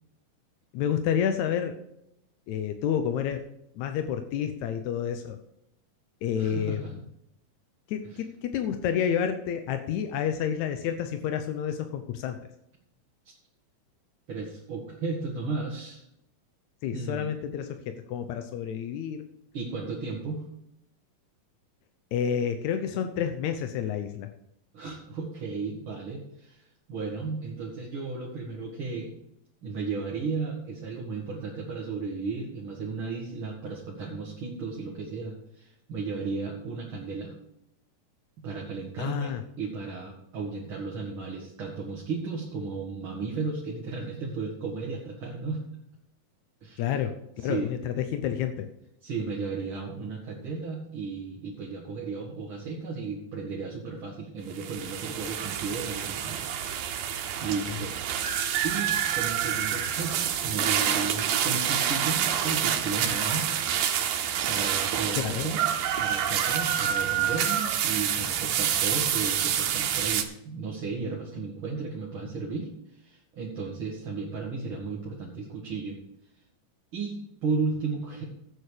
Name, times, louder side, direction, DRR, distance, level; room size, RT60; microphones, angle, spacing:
voice 1, 0.7-1.7 2.5-3.4 3.8-5.4 6.2-6.8 7.9-12.4 16.8-19.2 22.1-24.3 39.0-39.4 46.8-48.7 65.2-65.5, left 8 dB, 75° left, 7 dB, 1.8 m, -29 dB
voice 2, 6.4-6.9 8.1-8.2 13.2-13.3 14.3-16.1 16.9-17.3 19.5-20.4 24.7-29.1 29.6-37.3 38.4-45.6 46.6-47.0 47.4-47.7 49.0-57.0 57.4-58.0 58.6-63.5 64.5-65.6 66.0-76.0 76.9-78.2, right 4 dB, 45° right, -3 dB, 2.2 m, -34 dB
sound 1, 54.5-70.2, right 9 dB, 85° right, 2.9 m, -27 dB
13.5 x 9.0 x 5.0 m, 0.79 s
omnidirectional pair, 4.1 m